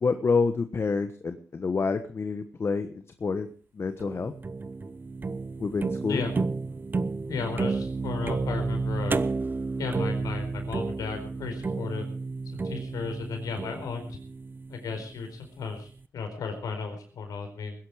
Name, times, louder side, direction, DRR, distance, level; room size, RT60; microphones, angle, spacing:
voice 1, 0.0-3.5 3.7-4.3 5.6-6.2, left 4 dB, 45° left, 9 dB, 1.2 m, -28 dB
sound 1, 4.0-15.2, right 4 dB, 35° right, 0.8 m, -31 dB
voice 2, 7.3-9.2 9.8-12.1 12.4-14.2 14.7-17.7, left 5 dB, 85° left, 5 dB, 4.6 m, -34 dB
20.5 x 11.0 x 5.0 m, 0.43 s
cardioid pair, 80°, 6 cm